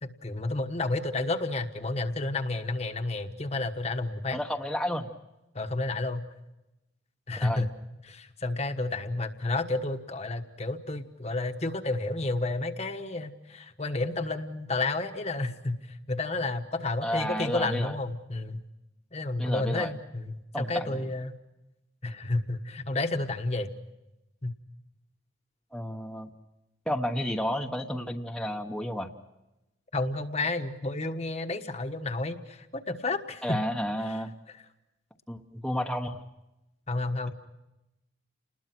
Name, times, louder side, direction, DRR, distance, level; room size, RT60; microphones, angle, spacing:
voice 1, 0.0-4.4 5.5-6.2 7.3-7.7 8.0-18.6 19.1-21.4 22.0-23.7 24.4-24.5 29.9-33.6 36.9-37.3, left 2 dB, 35° left, 6 dB, 1.3 m, -31 dB
voice 2, 4.3-5.1 7.4-7.7 17.0-17.9 19.4-19.9 20.5-21.1 25.7-26.3 26.9-29.1 33.4-34.3 35.3-36.2, equal, 5° left, 2 dB, 1.1 m, -31 dB
29.5 x 20.5 x 6.1 m, 0.94 s
head